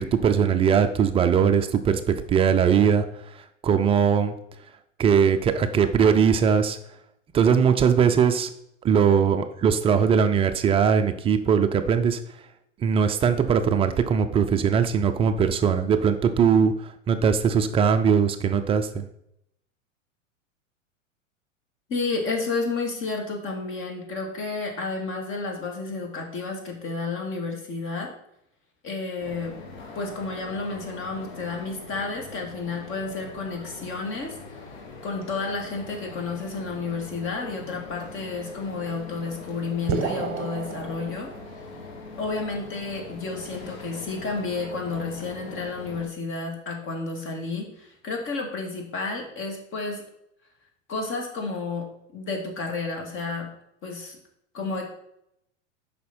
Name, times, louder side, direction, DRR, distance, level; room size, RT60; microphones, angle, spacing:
voice 1, 0.0-3.0 3.6-4.3 5.0-6.8 7.3-8.5 8.8-12.2 12.8-19.0, right 7 dB, 15° right, 8 dB, 0.4 m, -20 dB
voice 2, 21.9-28.1 28.8-29.5 29.9-34.6 35.0-41.3 42.2-50.0 50.9-51.9 52.1-53.5 53.8-54.2 54.5-54.9, left 3 dB, 30° left, 2 dB, 2.3 m, -31 dB
Train Station Busy, 29.2-46.1, left 3 dB, 55° left, 2.1 m, -42 dB
sound 1, 39.9-41.8, right 6 dB, 35° right, 1.1 m, -31 dB
8.2 x 5.7 x 4.3 m, 0.77 s
hypercardioid pair, 100°, 39 cm